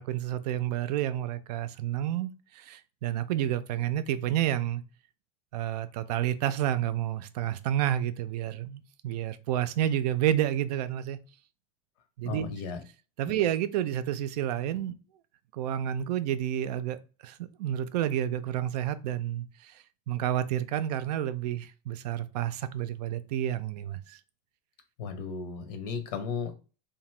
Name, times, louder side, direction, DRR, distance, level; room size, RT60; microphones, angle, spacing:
voice 1, 0.0-4.8 5.5-11.2 12.2-12.5 13.2-14.9 15.5-19.7 20.1-24.2, right 11 dB, 90° right, 0.4 m, -30 dB
voice 2, 12.2-12.8 25.0-26.5, left 5 dB, 85° left, 0.8 m, -35 dB
2.8 x 2.2 x 3.1 m
supercardioid pair, 140°, 20 cm